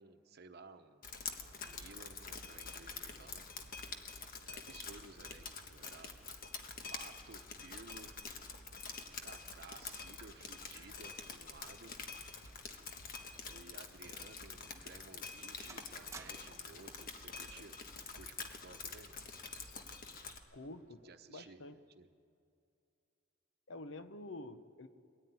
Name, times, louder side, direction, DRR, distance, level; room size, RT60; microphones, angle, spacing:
voice 1, 0.0-3.5 4.5-6.1 6.9-8.2 9.2-12.0 13.4-19.2 21.0-22.1, right 3 dB, 55° right, 8 dB, 1.0 m, -56 dB
Drip, 1.0-20.4, left 4 dB, 50° left, 1.3 m, -47 dB
sound 1, 12.3-13.5 13.8-14.0 14.6-14.7 15.2-15.4 15.7-16.7 17.7-18.0, right 3 dB, 15° right, 1.1 m, -56 dB
voice 2, 20.5-21.8 23.7-24.9, left 2 dB, 75° left, 11 dB, 0.9 m, -48 dB
21.5 x 14.0 x 9.5 m, 2.5 s
head